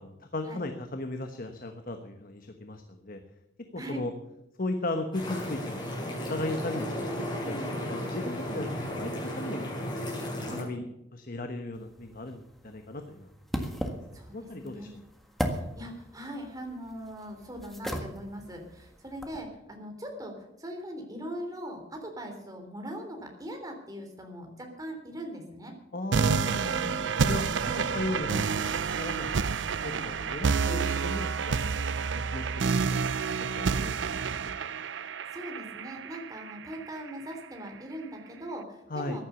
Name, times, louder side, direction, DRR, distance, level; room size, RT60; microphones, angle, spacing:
voice 1, 0.0-3.2 3.7-4.1 4.6-7.0 7.4-7.6 7.9-9.1 9.4-9.9 10.3-13.3 13.7-14.0 14.3-14.9 25.9-31.7 32.3-33.0 33.4-34.1 38.9-39.2, left 2 dB, 50° left, 6 dB, 1.2 m, -36 dB
voice 2, 3.8-4.1 7.4-7.7 10.5-10.8 14.1-14.9 15.5-25.7 26.7-26.9 27.5-27.8 30.7-30.9 35.3-39.2, equal, 20° right, 3 dB, 3.4 m, -40 dB
sound 1, 5.1-10.6, equal, 25° left, 6.9 m, -34 dB
sound 2, 11.7-19.4, equal, ahead, 1.6 m, -38 dB
sound 3, 26.1-37.1, right 5 dB, 75° right, 0.5 m, -29 dB
15.0 x 11.0 x 7.0 m, 0.87 s
head